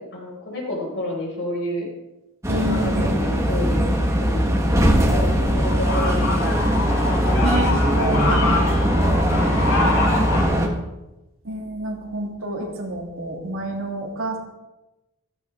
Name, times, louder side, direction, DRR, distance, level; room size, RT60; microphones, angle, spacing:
voice 1, 0.1-1.9 2.5-6.5 7.2-7.5 9.0-10.8, left 1 dB, 55° left, -3 dB, 5.8 m, -31 dB
sound 1, 2.4-10.7, equal, 15° right, 1.6 m, -20 dB
voice 2, 2.5-3.2 7.2-9.5 11.4-14.4, right 1 dB, 60° right, 0 dB, 2.9 m, -29 dB
sound 2, 5.1-10.4, left 2 dB, 80° left, 5.9 m, -26 dB
15.5 x 14.5 x 3.8 m, 0.99 s
head